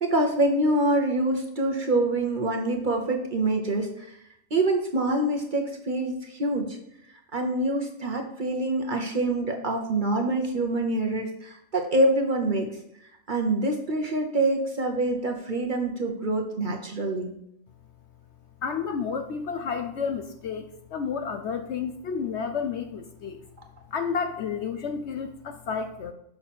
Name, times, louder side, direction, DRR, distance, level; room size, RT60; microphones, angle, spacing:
voice 1, 0.0-4.1 4.5-6.8 7.3-12.7 13.3-17.3, right 2 dB, 40° right, 2 dB, 1.0 m, -25 dB
voice 2, 18.6-23.4 23.9-26.1, left 6 dB, 60° left, 8 dB, 0.8 m, -31 dB
6.7 x 5.8 x 4.2 m, 0.77 s
omnidirectional pair, 1.5 m